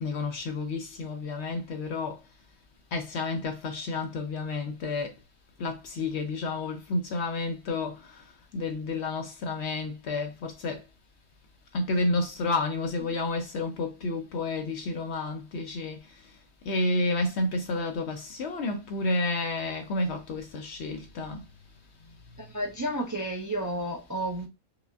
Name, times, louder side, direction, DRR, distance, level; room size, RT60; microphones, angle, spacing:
voice 1, 0.0-2.2 2.9-5.1 5.6-8.1 8.5-10.8 11.7-16.0 16.7-21.4, left 2 dB, 65° left, 0.7 m, -30 dB
voice 2, 22.4-24.5, right 1 dB, 25° right, 0.4 m, -32 dB
4.9 x 2.4 x 2.3 m
omnidirectional pair, 1.5 m